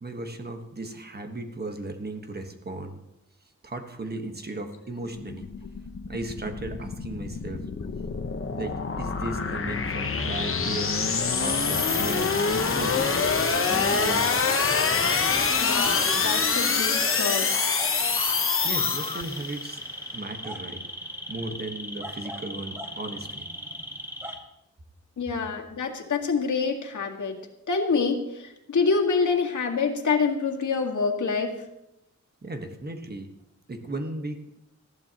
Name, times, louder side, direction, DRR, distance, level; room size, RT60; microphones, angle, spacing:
voice 1, 0.0-3.0 3.6-5.5 6.1-7.7 8.6-11.0 11.4-12.3 12.8-14.3 18.6-19.8 20.1-20.8 21.3-23.5 32.4-33.3 33.7-34.4, right 2 dB, 35° right, 5 dB, 1.4 m, -36 dB
sound 1, 5.0-19.6, left 5 dB, 45° left, 1.0 m, -26 dB
sound 2, 11.3-24.4, equal, 10° right, 1.5 m, -38 dB
sound 3, 12.5-19.2, left 4 dB, 20° left, 0.4 m, -37 dB
voice 2, 15.6-17.5 25.2-27.3 27.7-31.6, left 5 dB, 90° left, 1 dB, 1.9 m, -26 dB
19.0 x 14.5 x 3.0 m, 0.87 s
wide cardioid pair, 155°, 29 cm